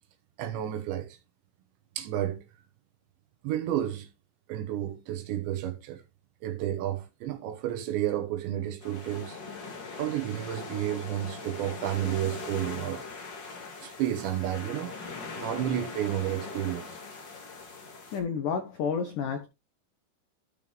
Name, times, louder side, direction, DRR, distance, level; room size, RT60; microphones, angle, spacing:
voice 1, 0.4-1.2 2.0-2.4 3.4-4.1 4.5-6.0 6.4-9.4 10.0-13.0 13.8-15.1 15.4-16.9, right 12 dB, 75° right, 3.3 m, -31 dB
sound 1, 8.8-18.2, left 4 dB, 55° left, 1.2 m, -41 dB
voice 2, 18.1-19.5, left 6 dB, 80° left, 1.9 m, -30 dB
13.5 x 5.3 x 3.3 m
omnidirectional pair, 5.4 m